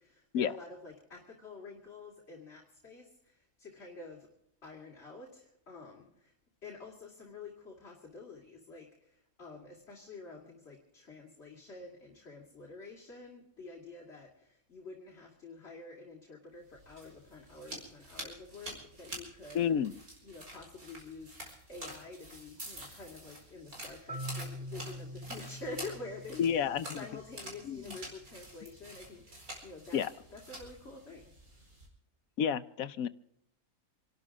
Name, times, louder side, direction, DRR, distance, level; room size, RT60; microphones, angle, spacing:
voice 1, 0.0-4.3 4.6-6.3 6.6-19.6 20.2-21.3 21.7-26.4 26.9-30.0 30.3-31.2 31.5-31.7, left 3 dB, 45° left, -2 dB, 2.9 m, -48 dB
sound 1, 16.7-31.9, right 1 dB, 80° right, 5.1 m, -48 dB
voice 2, 19.5-19.9 26.4-27.0 27.6-27.8 29.9-30.1 32.4-33.1, left 8 dB, 75° left, 14 dB, 1.2 m, -30 dB
Marimba xylophone, 24.1-28.0, equal, 15° right, 2.6 m, -45 dB
28.0 x 12.5 x 3.6 m, 0.78 s
omnidirectional pair, 1.5 m